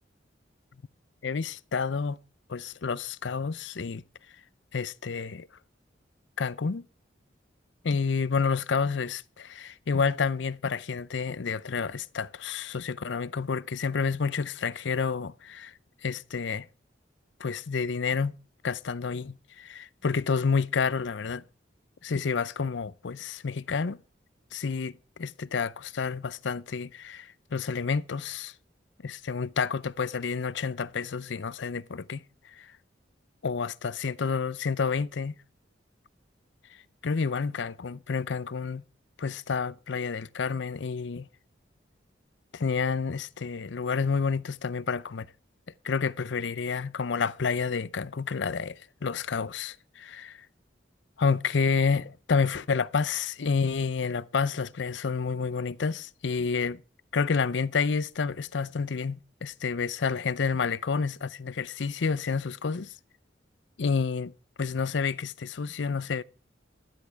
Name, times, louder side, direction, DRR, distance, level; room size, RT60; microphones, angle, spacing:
voice 1, 1.2-2.2 2.5-4.0 4.7-5.5 6.4-6.8 7.8-15.7 16.0-16.7 17.4-18.4 18.6-21.4 22.0-24.0 24.5-28.5 29.0-32.7 33.4-35.3 37.0-38.8 39.2-41.3 42.5-45.3 45.8-50.5 51.2-56.8 57.1-62.9 63.8-64.3 64.6-66.2, left 5 dB, 75° left, 0.6 m, -29 dB
12.5 x 10.5 x 4.6 m
head